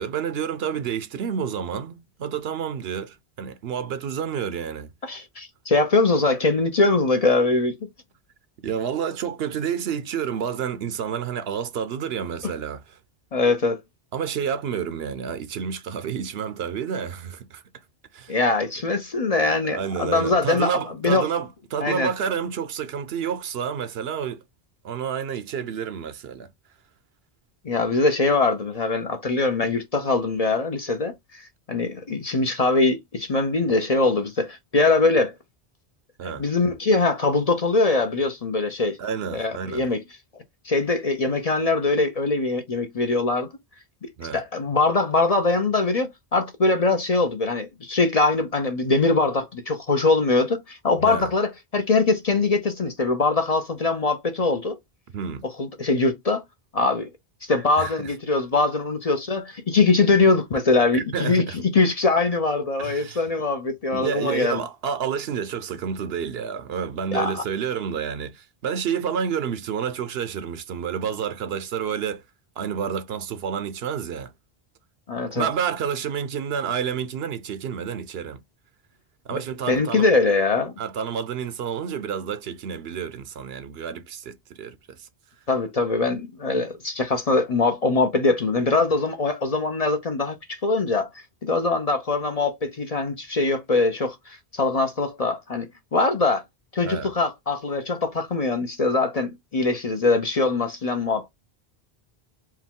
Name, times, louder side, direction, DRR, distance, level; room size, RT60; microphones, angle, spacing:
voice 1, 0.0-4.9 8.6-13.0 14.1-17.6 18.1-18.4 19.4-24.4 24.8-26.5 36.2-36.4 39.0-39.8 44.2-44.4 51.0-51.3 55.1-55.4 57.8-58.1 60.9-61.6 62.8-63.2 63.9-72.2 72.6-74.3 75.3-78.4 79.2-80.1 80.8-85.1 96.8-97.1, right 7 dB, 75° right, 0.9 m, -29 dB
voice 2, 5.0-7.8 13.3-13.8 18.3-21.3 21.8-22.1 27.6-35.3 36.2-39.0 39.3-40.0 40.6-43.5 44.0-54.8 55.6-56.4 56.7-57.1 57.4-64.6 67.1-67.4 75.1-75.5 79.3-79.4 79.7-80.8 85.5-91.1 91.4-96.4 96.7-101.3, left 3 dB, 45° left, 0.7 m, -22 dB
4.6 x 2.2 x 3.6 m
omnidirectional pair, 1.1 m